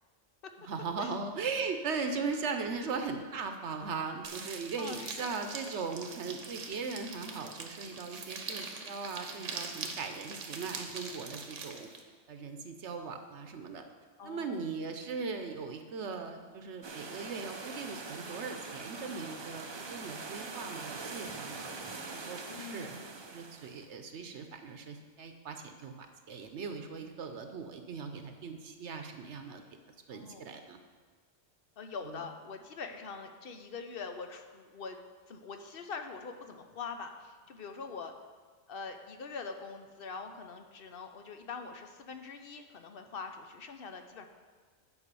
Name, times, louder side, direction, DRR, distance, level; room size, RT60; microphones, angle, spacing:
voice 1, 0.6-11.9 12.3-13.8 14.2-21.7 22.0-25.9 26.3-29.6 30.1-30.8 32.0-32.2, right 4 dB, 70° right, 6 dB, 1.0 m, -39 dB
sound 1, 4.2-12.0, right 4 dB, 85° right, 1.3 m, -43 dB
voice 2, 4.8-5.3 14.2-14.6 22.5-23.1 30.1-30.5 31.8-35.0 35.3-38.1 38.7-44.3, left 5 dB, 55° left, 6 dB, 0.9 m, -43 dB
sound 2, 16.8-23.9, right 3 dB, 35° right, 0.4 m, -43 dB
9.7 x 4.9 x 6.8 m, 1.5 s
omnidirectional pair, 1.2 m